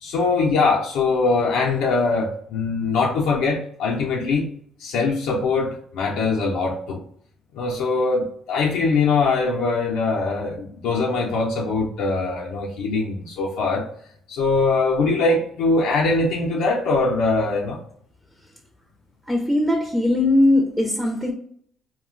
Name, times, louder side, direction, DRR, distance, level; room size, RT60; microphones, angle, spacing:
voice 1, 0.0-4.5 4.8-7.0 7.5-13.9 14.3-17.8, left 3 dB, 85° left, 0.5 m, -22 dB
voice 2, 19.3-21.3, left 1 dB, ahead, 0.5 m, -19 dB
2.4 x 2.1 x 3.6 m
cardioid pair, 80°, 0 cm